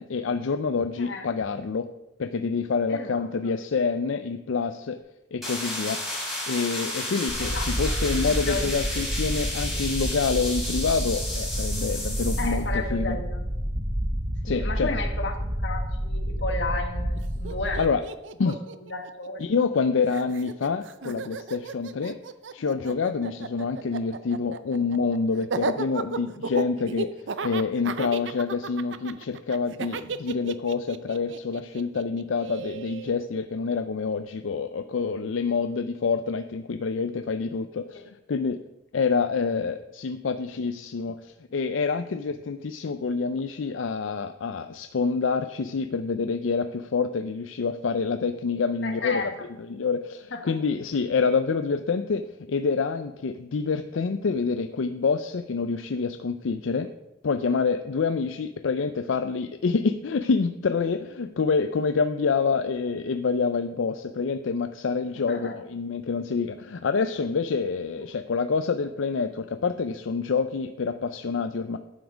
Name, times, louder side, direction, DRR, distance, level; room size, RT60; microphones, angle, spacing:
voice 1, 0.0-1.9 2.2-5.0 5.3-6.0 6.5-13.2 14.4-14.9 17.8-18.0 18.4-18.6 19.4-22.2 22.5-27.1 27.4-38.6 38.9-49.3 49.6-56.9 57.2-71.8, left 5 dB, 85° left, 9 dB, 0.5 m, -27 dB
voice 2, 1.0-1.3 2.9-3.5 7.4-9.0 12.4-13.4 14.5-17.8 18.4-19.4 37.9-38.0 48.8-49.3 50.3-50.4 65.3-65.5 68.0-68.1, left 3 dB, 65° left, 4 dB, 1.5 m, -34 dB
sound 1, 5.4-12.6, left 1 dB, ahead, 4.4 m, -32 dB
Starship bridge ambience, 7.3-17.8, equal, 45° right, 1.4 m, -29 dB
Laughter, 17.2-17.3 17.4-19.8 20.1-33.1, right 4 dB, 70° right, 0.5 m, -34 dB
11.0 x 7.2 x 5.0 m, 0.95 s
head